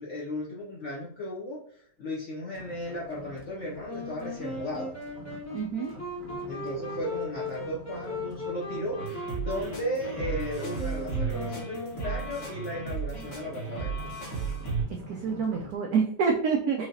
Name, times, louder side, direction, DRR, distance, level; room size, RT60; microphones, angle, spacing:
voice 1, 0.0-4.9 6.5-13.9, left 1 dB, 65° left, -5 dB, 0.7 m, -35 dB
sound 1, 2.5-15.8, equal, 35° right, 0.8 m, -47 dB
Wind instrument woodwind instrument, 3.8-12.6, left 2 dB, 15° left, 0.5 m, -38 dB
voice 2, 5.5-5.9 15.1-16.9, right 5 dB, 85° right, 3 dB, 0.8 m, -27 dB
sound 2, 9.0-14.8, right 5 dB, 45° left, 1.4 m, -34 dB
4.7 x 2.8 x 2.6 m, 0.63 s
omnidirectional pair, 2.1 m